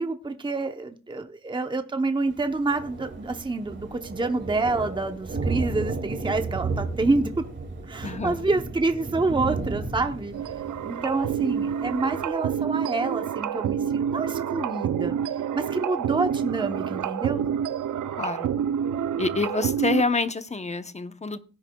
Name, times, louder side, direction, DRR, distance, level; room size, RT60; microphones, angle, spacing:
voice 1, 0.0-7.3 7.9-10.3 10.8-15.1 15.5-17.4, right 3 dB, 15° right, 0.8 m, -27 dB
Thunder, 2.3-12.3, right 3 dB, 40° right, 2.3 m, -33 dB
voice 2, 8.0-8.4 18.2-18.5 19.2-21.4, left 3 dB, 20° left, 0.8 m, -27 dB
sound 1, 10.3-20.0, right 8 dB, 80° right, 0.6 m, -28 dB
18.0 x 9.8 x 2.3 m
wide cardioid pair, 120°, 30 cm